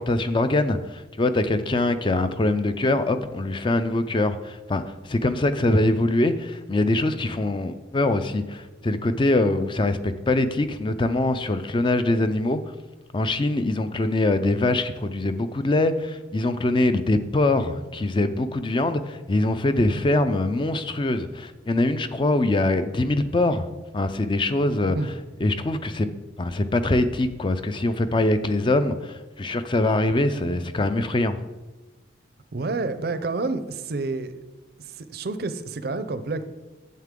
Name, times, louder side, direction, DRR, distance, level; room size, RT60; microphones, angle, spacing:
voice 1, 0.0-12.6 13.1-25.0 25.4-26.1 26.4-31.4, left 2 dB, 25° left, 10 dB, 0.4 m, -23 dB
voice 2, 32.5-34.3 34.8-36.4, right 3 dB, 55° right, 11 dB, 0.5 m, -29 dB
9.3 x 7.4 x 3.7 m, 1.1 s
head